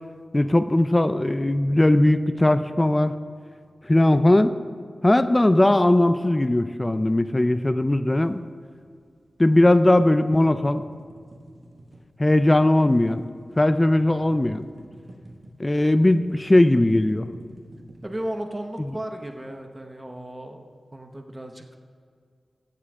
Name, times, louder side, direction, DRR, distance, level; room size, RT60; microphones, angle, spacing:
voice 1, 0.3-3.1 3.9-4.6 5.0-8.4 9.4-10.8 12.2-13.2 13.6-14.6 15.6-17.3, left 1 dB, 20° left, 12 dB, 0.5 m, -19 dB
sound 1, 7.9-9.1 9.4-15.7 16.0-19.0, right 1 dB, 55° right, 1.4 m, -47 dB
voice 2, 18.0-21.8, right 1 dB, 20° right, 4 dB, 1.0 m, -35 dB
17.0 x 7.5 x 3.6 m, 2.2 s
wide cardioid pair, 75°, 0 cm